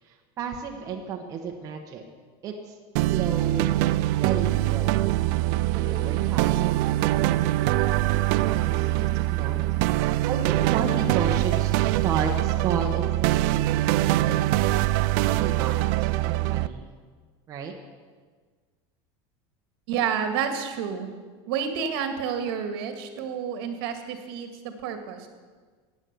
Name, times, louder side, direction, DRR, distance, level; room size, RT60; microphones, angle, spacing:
voice 1, 0.0-2.0 2.4-2.8 3.1-3.7 4.2-4.9 5.7-8.2 8.5-9.6 10.1-14.4 15.2-16.8 17.5-17.7, right 5 dB, 25° right, 1 dB, 1.1 m, -33 dB
sound 1, 3.0-16.7, right 16 dB, 50° right, 0.4 m, -23 dB
voice 2, 19.9-21.1 21.5-25.3, right 7 dB, 70° right, 6 dB, 2.0 m, -29 dB
15.5 x 9.8 x 6.8 m, 1.5 s
cardioid pair, 175°, 13 cm